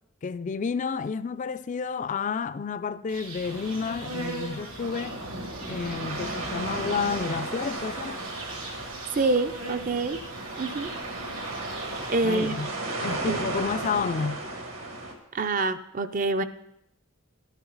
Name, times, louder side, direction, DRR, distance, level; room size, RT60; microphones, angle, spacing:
voice 1, 0.2-5.2 5.7-8.2 12.2-12.7 13.0-14.4, left 5 dB, 35° left, 0.3 m, -30 dB
Insect, 3.1-12.9, right 2 dB, 85° right, 2.4 m, -41 dB
sound 1, 3.4-15.1, right 2 dB, 65° right, 1.9 m, -35 dB
voice 2, 9.1-10.2 10.6-10.9 12.1-12.5 13.3-13.4 15.3-16.4, right 3 dB, 40° right, 0.5 m, -26 dB
12.5 x 10.5 x 4.0 m
head